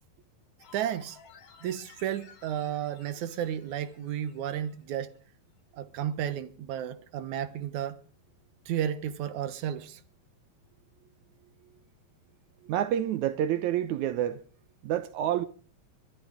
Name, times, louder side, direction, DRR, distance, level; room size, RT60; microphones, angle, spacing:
sound 1, 0.6-4.8 5.2-5.3, left 7 dB, 70° left, 4.4 m, -56 dB
voice 1, 0.7-1.2 1.6-5.1 5.7-8.0 8.7-10.0, right 10 dB, 65° right, 2.2 m, -33 dB
voice 2, 12.6-14.4 14.8-15.4, right 11 dB, 90° right, 1.6 m, -28 dB
23.5 x 13.0 x 3.7 m
omnidirectional pair, 4.5 m